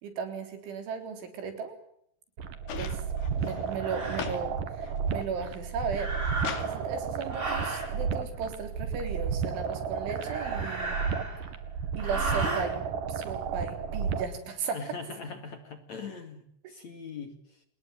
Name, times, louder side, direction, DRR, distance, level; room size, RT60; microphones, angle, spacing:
voice 1, 0.0-1.8 2.8-3.0 3.4-6.1 6.6-10.9 12.0-14.8 16.6-16.7, right 5 dB, 75° right, 7 dB, 6.1 m, -36 dB
sound 1, 2.4-14.4, right 6 dB, 55° right, 3.0 m, -33 dB
sound 2, 2.7-4.5 4.8-5.4 5.9-6.7 7.9-8.0, left 7 dB, 60° left, 4.3 m, -40 dB
sound 3, 2.8-3.0 3.7-4.3 5.9-6.8 7.3-7.9 10.1-11.5 12.0-12.7, right 2 dB, 15° right, 5.4 m, -35 dB
voice 2, 14.7-17.6, left 5 dB, 45° left, 8 dB, 2.9 m, -41 dB
28.0 x 21.0 x 8.1 m, 0.69 s
omnidirectional pair, 5.5 m